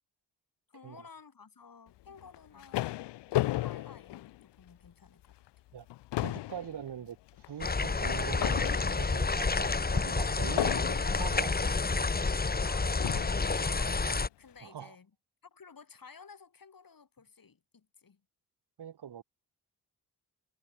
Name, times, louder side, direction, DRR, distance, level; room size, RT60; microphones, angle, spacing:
voice 1, 0.7-3.0 3.6-5.4 10.5-10.6 12.6-15.1 15.4-18.2, left 5 dB, 55° left, 6.3 m, -54 dB
sound 1, 2.2-4.9 5.3-5.5 5.8-9.3 10.6-11.3 12.2-12.3 13.0-13.5, left 16 dB, 90° left, 0.6 m, -35 dB
voice 2, 6.2-11.7 14.6-15.0 18.8-19.2, right 9 dB, 70° right, 2.1 m, -43 dB
sound 2, 7.6-14.3, left 4 dB, 20° left, 1.1 m, -29 dB
supercardioid pair, 50°, 41 cm